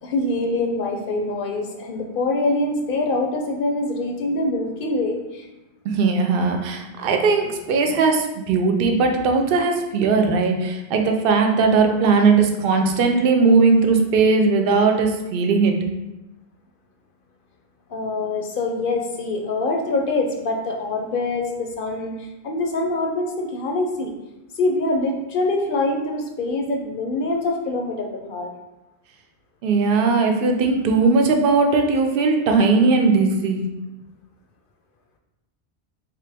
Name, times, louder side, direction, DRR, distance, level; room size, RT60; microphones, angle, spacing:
voice 1, 0.0-5.5 17.9-24.1 24.5-28.5, left 2 dB, 65° left, 3 dB, 0.7 m, -24 dB
voice 2, 5.8-15.8 29.6-33.7, right 4 dB, 65° right, 4 dB, 0.7 m, -18 dB
3.7 x 2.9 x 3.4 m, 1.0 s
omnidirectional pair, 1.1 m